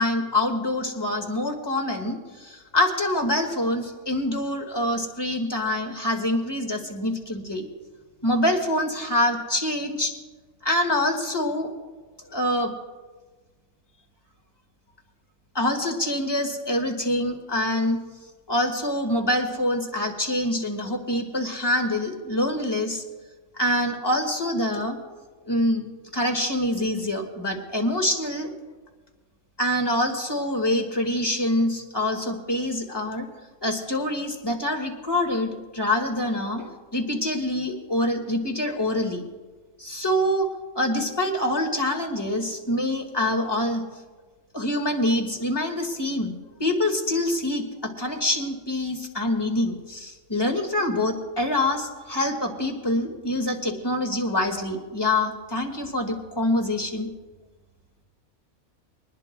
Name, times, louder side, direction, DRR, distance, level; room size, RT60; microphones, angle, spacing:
voice 1, 0.0-7.7 8.2-10.1 10.6-11.7 12.3-12.7 15.5-18.0 18.5-23.0 23.5-25.0 25.4-25.9 26.1-28.5 29.6-33.3 33.6-39.2 39.8-40.5 40.8-43.8 44.5-46.3 46.6-57.1, left 1 dB, 15° left, 3 dB, 1.9 m, -25 dB
24.5 x 20.0 x 2.3 m, 1.3 s
omnidirectional pair, 1.5 m